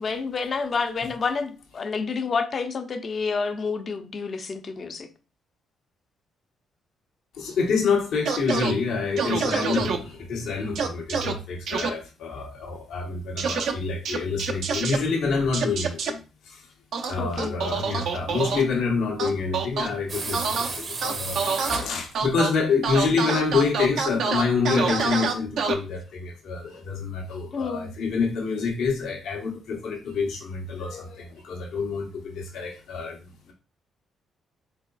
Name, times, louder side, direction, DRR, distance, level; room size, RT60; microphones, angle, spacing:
voice 1, 0.0-5.1 17.2-17.6 27.5-27.9, left 5 dB, 45° left, 0.6 m, -29 dB
voice 2, 7.4-16.2 16.5-16.6 17.1-33.2, left 5 dB, 80° left, 1.2 m, -27 dB
sound 1, 8.3-8.7 9.2-10.0 10.8-11.3 11.7-11.9 13.4-13.7 14.1-15.0 15.5-16.1 16.9-18.6 19.2-19.9 20.3-20.7 21.0-21.8 22.1-22.5 22.8-25.7, right 5 dB, 75° right, 0.6 m, -26 dB
sound 2, 20.1-22.3, right 3 dB, 45° right, 0.8 m, -33 dB
4.1 x 3.9 x 2.3 m
cardioid pair, 90°, 0 cm